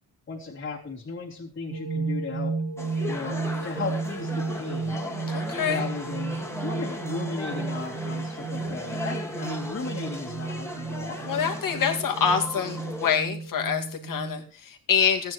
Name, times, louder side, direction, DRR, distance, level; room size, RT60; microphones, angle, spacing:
voice 1, 0.3-2.5 3.1-5.0 5.7-11.2, left 4 dB, 35° left, -2 dB, 3.2 m, -36 dB
sound 1, 1.7-14.5, right 4 dB, 80° right, 2.5 m, -33 dB
sound 2, 2.8-13.2, left 1 dB, 5° left, 1.8 m, -37 dB
voice 2, 5.3-5.9 11.2-15.3, left 7 dB, 60° left, 3 dB, 2.4 m, -26 dB
15.0 x 9.7 x 4.6 m, 0.38 s
wide cardioid pair, 160°, 36 cm